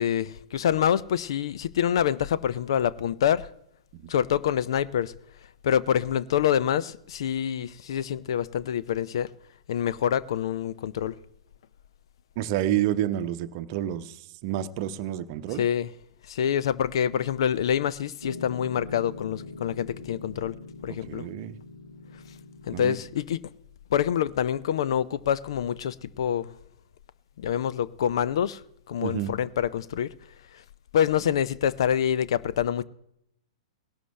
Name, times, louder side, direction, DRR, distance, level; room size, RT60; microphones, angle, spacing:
voice 1, 0.0-3.5 4.1-5.1 5.6-9.3 9.7-11.1 15.6-15.9 16.3-20.5 20.8-21.2 22.6-23.4 23.9-26.5 27.4-28.6 28.9-30.1 30.9-32.8, left 9 dB, 55° left, 0.5 m, -26 dB
voice 2, 12.4-15.7 21.0-21.6 22.7-23.0 29.0-29.3, right 12 dB, 40° right, 0.8 m, -29 dB
Piano, 18.2-23.3, left 3 dB, 85° left, 2.3 m, -43 dB
18.5 x 17.0 x 3.3 m
figure-of-eight pair, 110°, 3 cm